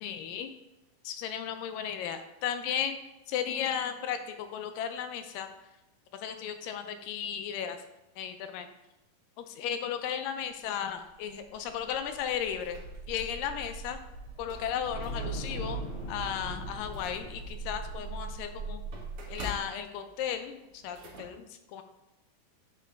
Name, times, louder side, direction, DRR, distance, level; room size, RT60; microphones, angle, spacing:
voice 1, 0.0-0.5 1.0-3.0 3.3-5.5 6.2-7.8 8.2-8.7 9.4-12.8 13.1-14.0 14.4-18.8 19.3-21.4 21.7-21.8, left 8 dB, 80° left, 8 dB, 2.1 m, -35 dB
sound 1, 11.3-19.7, right 2 dB, 25° left, 0.8 m, -40 dB
sound 2, 12.3-13.4 13.8-13.9 14.4-15.6 16.1-16.2 16.6-21.2, left 1 dB, 70° right, 1.3 m, -47 dB
8.4 x 4.1 x 3.4 m, 0.95 s
omnidirectional pair, 4.2 m